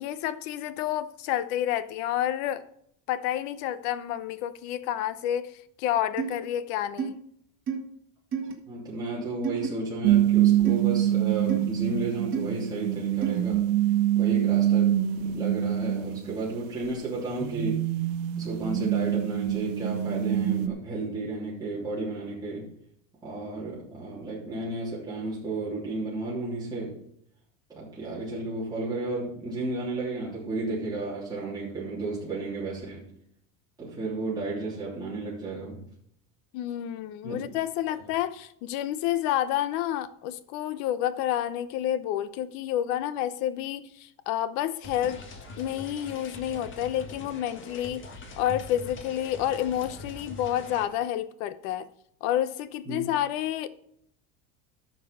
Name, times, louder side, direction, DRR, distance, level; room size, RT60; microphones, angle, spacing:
voice 1, 0.0-2.6 3.1-7.2 36.5-45.2 45.6-48.1 48.4-51.9 52.2-53.7, left 11 dB, 65° left, 0.9 m, -29 dB
sound 1, 6.2-6.3 7.0-7.1 7.7-7.8 8.3-8.5 9.4-9.7 10.7-10.8 11.5-11.6 12.3-12.4 13.2-13.4, right 7 dB, 30° right, 1.9 m, -30 dB
voice 2, 8.7-13.7 14.1-17.9 18.4-22.7 23.2-27.0 27.7-33.1 33.8-35.8 37.2-37.6 52.9-53.0, right 2 dB, 10° right, 3.2 m, -33 dB
sound 2, 10.0-20.7, right 12 dB, 75° right, 1.2 m, -25 dB
sound 3, 44.8-50.8, left 2 dB, 30° left, 1.7 m, -43 dB
11.5 x 6.6 x 5.4 m
supercardioid pair, 140°, 38 cm